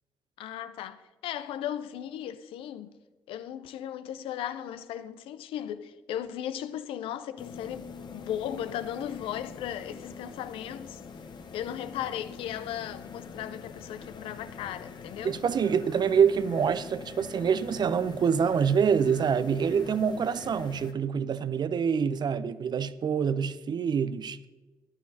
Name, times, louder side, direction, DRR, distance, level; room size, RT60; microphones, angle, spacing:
voice 1, 0.4-2.9 3.3-11.0 11.5-15.4, left 10 dB, 70° left, 0.6 m, -36 dB
sound 1, 7.4-20.9, left 5 dB, 50° left, 1.0 m, -44 dB
voice 2, 15.2-24.5, right 7 dB, 50° right, 0.6 m, -26 dB
13.5 x 11.5 x 2.8 m
hypercardioid pair, 45°, 9 cm